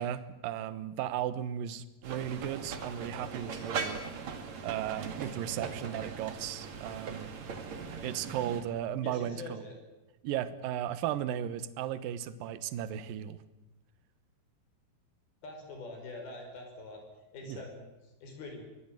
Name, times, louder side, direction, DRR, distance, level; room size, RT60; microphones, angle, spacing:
voice 1, 0.0-4.0 4.6-7.3 8.0-9.6 10.2-13.4 17.5-17.6, right 11 dB, 70° right, 14 dB, 2.6 m, -35 dB
sound 1, 2.0-8.6, right 5 dB, 45° right, 3.2 m, -40 dB
voice 2, 9.0-9.7 15.4-17.0 17.3-18.6, left 3 dB, 65° left, 3 dB, 7.5 m, -44 dB
23.5 x 19.0 x 9.1 m, 1.0 s
omnidirectional pair, 4.7 m